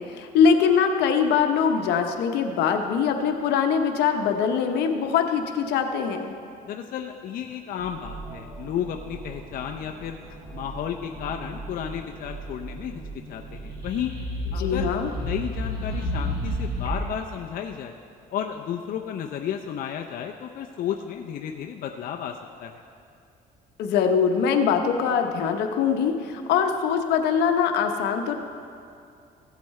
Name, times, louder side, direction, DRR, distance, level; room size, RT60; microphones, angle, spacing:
voice 1, 0.0-6.3 14.6-15.1 23.8-28.4, left 6 dB, 80° left, 5 dB, 0.9 m, -22 dB
voice 2, 6.6-10.2 10.5-14.1 14.5-18.0 18.3-22.8, left 9 dB, 60° left, 3 dB, 0.6 m, -33 dB
sound 1, 7.8-14.0, right 3 dB, 50° right, 2.6 m, -40 dB
sound 2, 13.6-17.2, left 1 dB, 25° right, 1.9 m, -30 dB
15.5 x 8.2 x 3.2 m, 2.6 s
cardioid pair, 110°, 17 cm